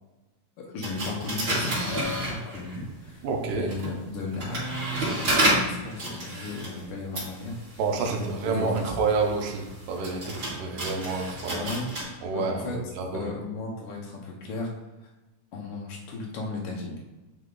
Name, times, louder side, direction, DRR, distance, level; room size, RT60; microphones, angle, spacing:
voice 1, 0.6-7.8 8.1-8.9 11.5-11.9 12.3-12.8 13.1-14.7 15.5-17.0, left 3 dB, 75° left, -2 dB, 1.2 m, -35 dB
sound 1, 0.8-2.9 3.5-12.0, right 1 dB, 35° right, 2.9 m, -31 dB
voice 2, 3.2-3.7 7.8-11.6 12.2-13.3, right 4 dB, 75° right, 2 dB, 2.5 m, -29 dB
10.0 x 3.4 x 3.8 m, 1.1 s
omnidirectional pair, 4.0 m